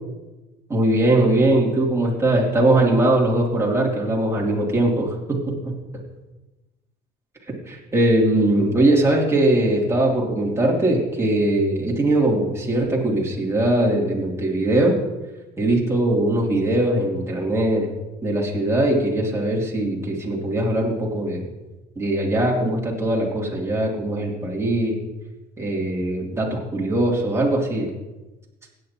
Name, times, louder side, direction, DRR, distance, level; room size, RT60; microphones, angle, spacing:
voice 1, 0.7-5.7 7.7-14.9 15.6-17.9 18.2-21.5 21.9-25.0 25.6-27.9, right 1 dB, 15° right, -3 dB, 3.0 m, -21 dB
16.5 x 9.6 x 3.0 m, 1.1 s
cardioid pair, 110°, 17 cm